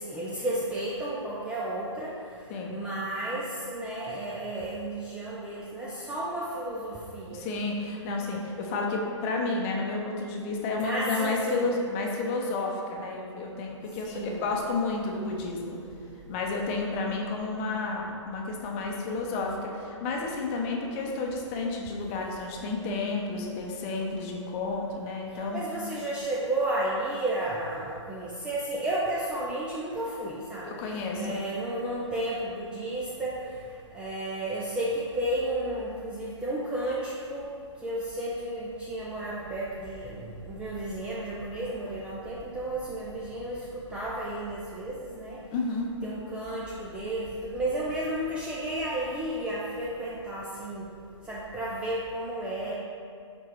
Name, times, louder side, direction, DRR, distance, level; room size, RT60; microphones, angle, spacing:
voice 1, 0.0-2.1 2.7-7.4 10.8-11.7 14.0-14.5 25.5-30.7 31.2-33.3 33.9-37.4 37.8-43.6 43.9-45.4 46.0-50.9 51.3-52.7, right 1 dB, 5° right, -6 dB, 0.4 m, -32 dB
voice 2, 7.3-15.8 16.3-25.7 30.6-31.4 45.5-45.9, left 3 dB, 25° left, 0 dB, 0.7 m, -31 dB
4.9 x 4.7 x 4.4 m, 2.3 s
figure-of-eight pair, 125°, 16 cm